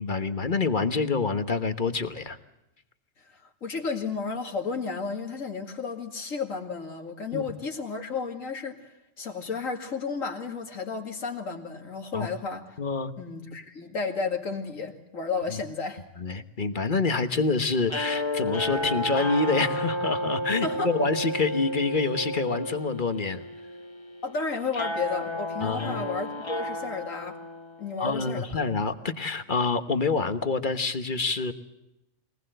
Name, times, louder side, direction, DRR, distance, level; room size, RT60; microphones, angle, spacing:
voice 1, 0.0-2.4 7.3-7.4 12.1-12.3 12.8-13.1 16.2-23.4 25.6-26.0 28.0-31.5, left 4 dB, 40° left, 10 dB, 1.3 m, -27 dB
voice 2, 3.3-12.8 13.2-16.0 20.6-20.9 24.2-27.4 27.8-28.7, left 4 dB, 90° left, 3 dB, 2.6 m, -32 dB
sound 1, 17.9-28.1, left 1 dB, 20° left, 1.3 m, -32 dB
23.0 x 19.5 x 7.8 m, 0.91 s
omnidirectional pair, 1.3 m